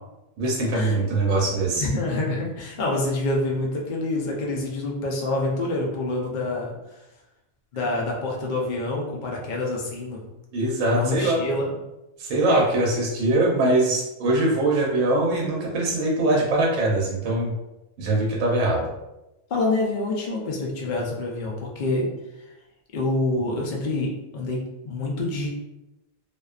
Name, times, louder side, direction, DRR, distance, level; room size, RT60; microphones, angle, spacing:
voice 1, 0.4-1.9 10.5-11.4 12.2-17.5 18.0-18.9, right 2 dB, 70° right, -3 dB, 0.9 m, -22 dB
voice 2, 1.8-6.7 7.7-10.3 10.9-11.7 19.5-22.1 22.9-25.5, left 2 dB, 75° left, -1 dB, 0.4 m, -27 dB
2.5 x 2.2 x 2.3 m, 0.95 s
omnidirectional pair, 1.5 m